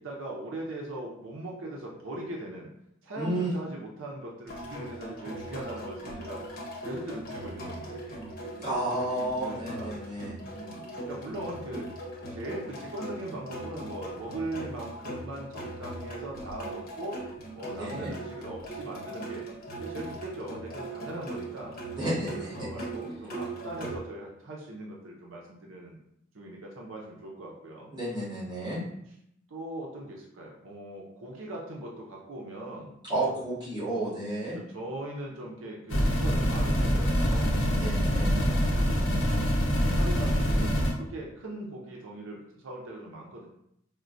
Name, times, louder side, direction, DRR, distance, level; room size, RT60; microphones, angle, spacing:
voice 1, 0.0-2.7 3.0-6.4 6.9-10.0 10.5-10.8 11.1-11.9 12.3-17.2 17.5-19.4 19.8-21.7 22.2-26.0 26.3-27.9 28.5-28.8 29.5-33.0 34.5-37.9 38.3-39.1 39.3-43.5, right 1 dB, 80° right, -1 dB, 0.6 m, -40 dB
voice 2, 3.1-3.5 8.6-10.4 17.7-18.1 21.9-22.7 27.9-28.8 33.0-34.6 37.7-38.3, right 1 dB, 20° right, -10 dB, 1.4 m, -31 dB
sound 1, 4.5-24.0, right 1 dB, 50° left, 0.9 m, -40 dB
sound 2, 35.9-40.9, equal, 75° left, 0.9 m, -25 dB
4.3 x 2.1 x 2.5 m, 0.75 s
head